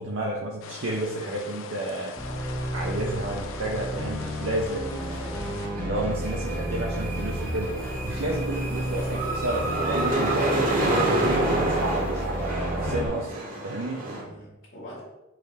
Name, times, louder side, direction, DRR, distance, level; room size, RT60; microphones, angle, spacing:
voice 1, 0.0-2.1 2.7-5.3 5.8-13.3 13.6-14.1, right 2 dB, 65° right, -1 dB, 0.6 m, -31 dB
sound 1, 0.6-5.7, left 5 dB, 70° left, 0.4 m, -41 dB
sound 2, 2.2-13.1, equal, 10° left, 0.6 m, -32 dB
sound 3, 5.0-14.2, right 2 dB, 40° right, 0.9 m, -29 dB
voice 2, 8.6-9.0 10.2-10.6 14.0-15.0, right 1 dB, 45° left, -9 dB, 1.3 m, -43 dB
4.7 x 3.4 x 3.3 m, 0.98 s
head